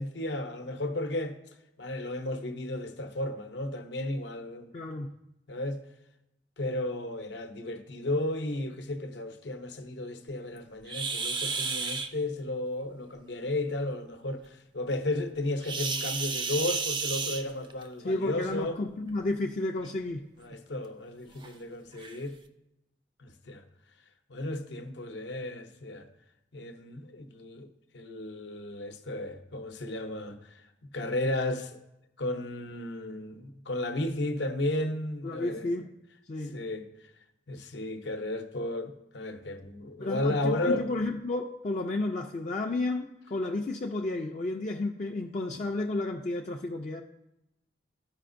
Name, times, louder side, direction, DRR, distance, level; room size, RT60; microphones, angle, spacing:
voice 1, 0.0-1.4 1.8-4.7 5.5-5.8 6.6-18.8 20.4-22.4 23.2-23.6 24.3-26.1 26.5-30.6 30.9-31.8 32.2-35.7 36.5-36.9 37.5-40.9 45.5-45.6, left 1 dB, 75° left, 0.7 m, -34 dB
voice 2, 4.7-5.1 18.0-20.2 35.2-35.9 36.3-36.6 40.0-47.0, left 2 dB, 40° left, 0.4 m, -32 dB
sound 1, 10.9-12.1 15.6-17.9 19.1-19.3 19.8-19.9 20.5-20.6 21.4-21.5 22.0-22.2, right 4 dB, 25° right, 0.4 m, -32 dB
13.5 x 5.0 x 2.6 m
head